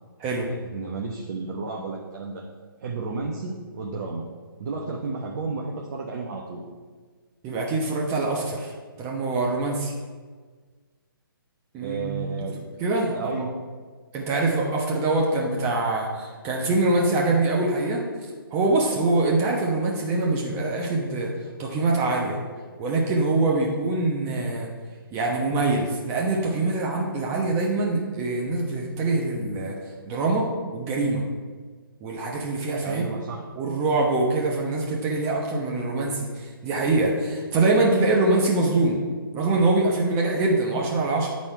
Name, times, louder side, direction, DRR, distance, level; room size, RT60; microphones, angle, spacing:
voice 1, 0.4-2.4 2.8-4.2 4.6-6.6 11.8-12.6 13.1-13.5 32.8-33.4, right 4 dB, 45° right, -1 dB, 0.9 m, -32 dB
voice 2, 7.4-8.7 9.0-9.9 11.7-12.3 12.8-13.3 14.1-18.0 18.5-21.3 21.6-22.4 22.8-24.7 25.1-29.8 30.0-31.2 32.0-33.1 33.5-39.0 39.3-41.3, right 2 dB, 20° right, -2 dB, 1.0 m, -24 dB
10.5 x 4.2 x 4.6 m, 1.5 s
figure-of-eight pair, 140°, 12 cm